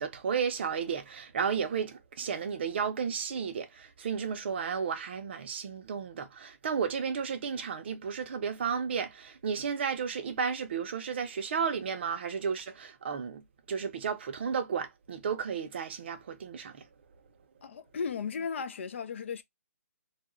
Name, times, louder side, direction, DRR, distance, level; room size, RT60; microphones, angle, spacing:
voice 1, 0.0-16.9, right 6 dB, 40° right, 0.5 m, -33 dB
voice 2, 17.6-19.4, left 6 dB, 50° left, 0.3 m, -35 dB
2.3 x 2.0 x 3.0 m
hypercardioid pair, 160°, 9 cm